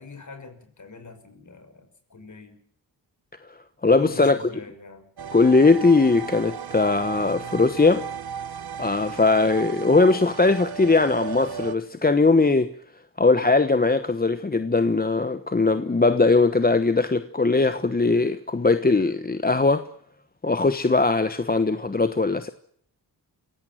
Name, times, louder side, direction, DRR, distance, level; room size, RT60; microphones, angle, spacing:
voice 1, 0.0-2.6 3.9-5.1, left 4 dB, 45° left, 5.9 m, -43 dB
voice 2, 3.8-4.4 5.3-8.1 8.8-12.7 13.2-19.9 20.4-22.5, left 3 dB, 20° left, 1.1 m, -20 dB
sound 1, 5.2-11.8, right 7 dB, 65° right, 1.0 m, -35 dB
27.0 x 17.0 x 7.6 m
cardioid pair, 85°, 41 cm